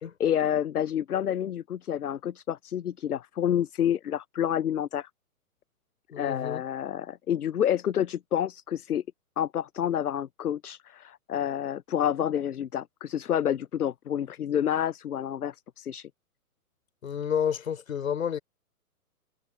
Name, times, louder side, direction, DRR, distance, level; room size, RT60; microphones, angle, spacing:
voice 1, 0.2-5.1 6.2-9.0 9.4-16.1, left 10 dB, 80° left, 0.6 m, -29 dB
voice 2, 6.1-6.6 17.0-18.4, left 8 dB, 60° left, 3.3 m, -30 dB
figure-of-eight pair, 120°, 45 cm